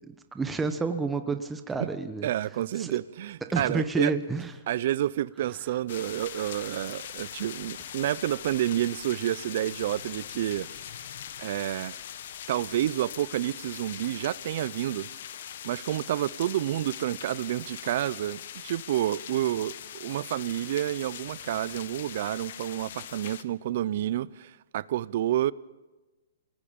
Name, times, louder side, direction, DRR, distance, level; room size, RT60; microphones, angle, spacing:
voice 1, 0.1-2.3 2.8-3.0 3.5-4.5 6.3-6.7, right 4 dB, 10° right, 1.1 m, -30 dB
voice 2, 2.2-4.1 4.7-10.7 11.4-11.9 12.5-15.1 15.6-25.5, right 12 dB, 50° right, 0.6 m, -29 dB
sound 1, 5.9-23.4, left 10 dB, 60° left, 1.2 m, -41 dB
28.5 x 19.5 x 5.4 m
hypercardioid pair, 150°, 0 cm